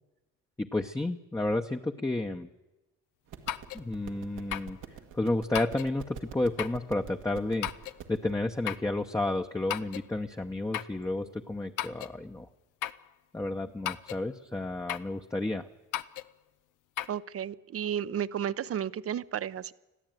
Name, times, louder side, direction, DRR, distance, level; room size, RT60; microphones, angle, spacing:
voice 1, 0.6-2.5 3.7-4.8 5.1-7.7 8.1-12.5 13.3-15.7, left 2 dB, 10° left, 3 dB, 0.9 m, -31 dB
sound 1, 3.3-8.3, right 8 dB, 85° right, 1.8 m, -46 dB
sound 2, 3.5-3.8 4.5-4.8 5.5-5.9 6.6-6.8 7.6-8.0 8.7-8.9 9.7-10.1 10.7-11.0 11.8-12.2 12.8-13.1 13.8-14.2 14.9-15.1 15.9-16.3 17.0-17.1, left 13 dB, 90° left, 0.7 m, -35 dB
voice 2, 17.1-19.7, right 9 dB, 50° right, 17 dB, 0.7 m, -33 dB
21.0 x 14.0 x 9.2 m, 1.0 s
cardioid pair, 90°, 30 cm